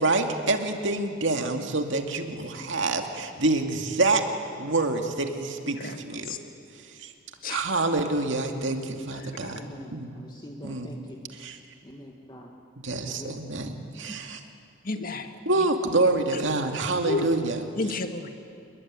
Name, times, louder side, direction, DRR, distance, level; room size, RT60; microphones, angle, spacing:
voice 1, 0.0-4.2 4.6-5.8 6.0-6.3 7.0-7.1 7.5-9.6 9.9-10.1 10.6-10.9 11.4-11.6 12.8-14.4 15.5-17.6, right 2 dB, 65° right, 4 dB, 2.4 m, -26 dB
voice 2, 5.6-6.0 8.5-9.1 9.5-11.2 11.8-12.5 13.0-13.8 14.1-14.2, equal, 20° left, 1 dB, 1.9 m, -44 dB
voice 3, 9.1-9.6 14.8-15.7 16.3-16.4 17.0-17.3 17.8-18.3, left 3 dB, 45° left, 7 dB, 1.8 m, -32 dB
28.5 x 21.5 x 9.7 m, 2.4 s
head